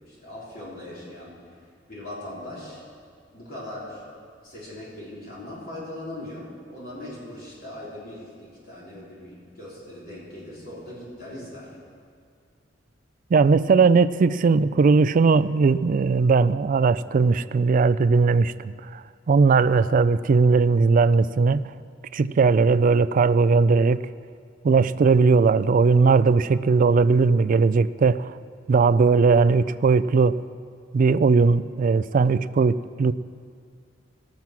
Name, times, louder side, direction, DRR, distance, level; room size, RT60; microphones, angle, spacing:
voice 1, 0.1-1.4 1.9-2.8 3.3-4.0 4.4-11.8, left 1 dB, 50° left, -7 dB, 3.8 m, -39 dB
voice 2, 13.3-21.7 22.1-24.1 24.6-28.3 28.7-30.4 30.9-33.1, right 4 dB, 45° right, 14 dB, 0.3 m, -19 dB
18.0 x 7.3 x 6.1 m, 2.1 s
head